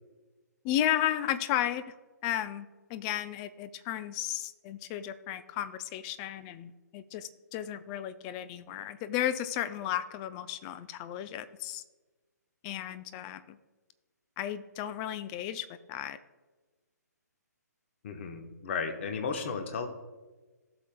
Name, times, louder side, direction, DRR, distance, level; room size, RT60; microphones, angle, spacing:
voice 1, 0.6-1.9 2.2-11.8 12.6-13.6 14.4-16.2, left 12 dB, 20° left, 13 dB, 0.3 m, -34 dB
voice 2, 18.0-19.9, left 5 dB, 40° left, 6 dB, 1.1 m, -34 dB
16.0 x 6.0 x 2.2 m, 1.3 s
figure-of-eight pair, 135°, 10 cm